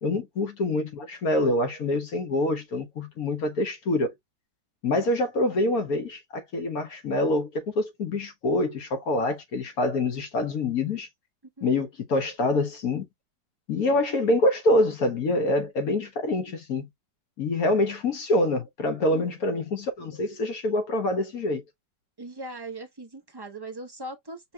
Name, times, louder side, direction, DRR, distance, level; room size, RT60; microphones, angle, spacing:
voice 1, 0.0-4.1 4.8-11.1 11.6-13.0 13.7-16.9 17.4-21.6, left 2 dB, 60° left, 1.5 m, -26 dB
voice 2, 22.2-24.5, right 2 dB, 25° right, 0.6 m, -39 dB
5.7 x 3.0 x 2.2 m
omnidirectional pair, 1.9 m